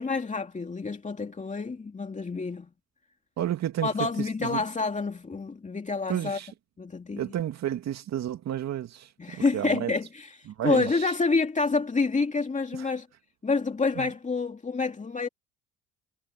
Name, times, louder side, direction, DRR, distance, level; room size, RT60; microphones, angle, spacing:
voice 1, 0.0-2.7 3.8-6.4 6.8-7.3 9.2-13.1 13.4-15.3, left 4 dB, 25° left, 2.5 m, -28 dB
voice 2, 3.4-3.9 4.4-4.6 6.1-6.5 7.2-9.1 9.5-9.9 10.6-10.9 14.0-14.1, right 11 dB, 60° right, 2.4 m, -30 dB
hypercardioid pair, 65°, 31 cm